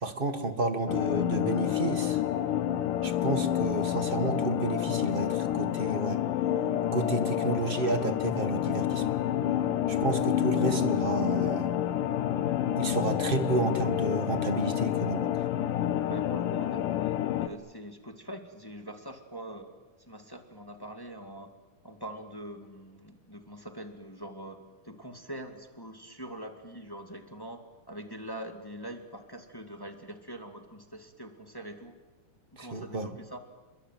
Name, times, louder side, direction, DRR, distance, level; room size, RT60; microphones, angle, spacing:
voice 1, 0.0-2.2 3.0-6.2 6.9-9.1 9.9-11.7 12.8-15.3 32.6-33.1, right 3 dB, 35° right, 9 dB, 0.8 m, -31 dB
sound 1, 0.9-17.5, left 11 dB, 85° left, 2.7 m, -29 dB
voice 2, 16.0-19.7 20.1-21.5 21.8-24.6 24.8-27.6 27.9-31.9 32.5-33.4, right 1 dB, 10° left, 6 dB, 1.5 m, -43 dB
28.0 x 22.0 x 9.4 m, 1.2 s
omnidirectional pair, 3.7 m